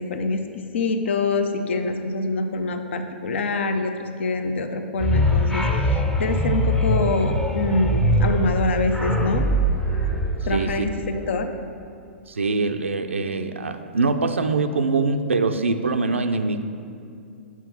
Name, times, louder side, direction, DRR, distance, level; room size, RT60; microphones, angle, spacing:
voice 1, 0.0-9.5 10.5-11.5, left 3 dB, 70° left, 7 dB, 0.6 m, -25 dB
sound 1, 5.0-11.2, equal, 10° left, 0.6 m, -22 dB
voice 2, 10.5-10.9 12.3-16.6, right 3 dB, 90° right, 7 dB, 0.4 m, -23 dB
5.9 x 4.6 x 5.7 m, 2.5 s
hypercardioid pair, 115°, 7 cm